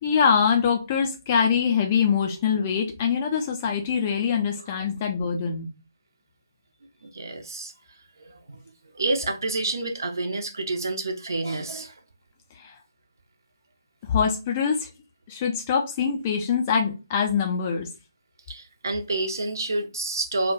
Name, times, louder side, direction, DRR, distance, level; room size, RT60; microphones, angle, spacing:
voice 1, 0.0-5.7 12.5-12.8 14.0-14.9 15.3-17.9, left 6 dB, 20° left, 0.3 m, -24 dB
voice 2, 7.0-7.7 8.5-8.6 8.9-11.9 18.5-20.5, right 2 dB, 55° right, 0.5 m, -28 dB
2.2 x 2.1 x 3.7 m
figure-of-eight pair, 150°, 2 cm